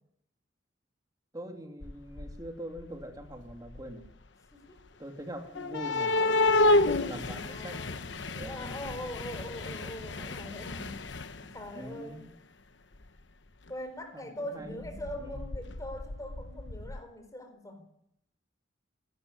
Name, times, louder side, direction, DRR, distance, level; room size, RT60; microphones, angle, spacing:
voice 1, 1.3-4.1 5.0-9.0 11.5-12.3 14.1-15.4, right 1 dB, 20° right, 4 dB, 2.8 m, -44 dB
sound 1, 1.8-2.5 2.8-4.1 5.5-11.7 13.0-13.1 13.7-13.8 14.8-17.0, left 2 dB, 70° left, 1.1 m, -30 dB
voice 2, 4.5-4.8 6.0-6.2 7.1-8.0 8.4-11.0 11.5-12.2 13.7-17.9, left 1 dB, 20° left, 6 dB, 4.5 m, -42 dB
26.5 x 13.0 x 9.7 m, 0.77 s
head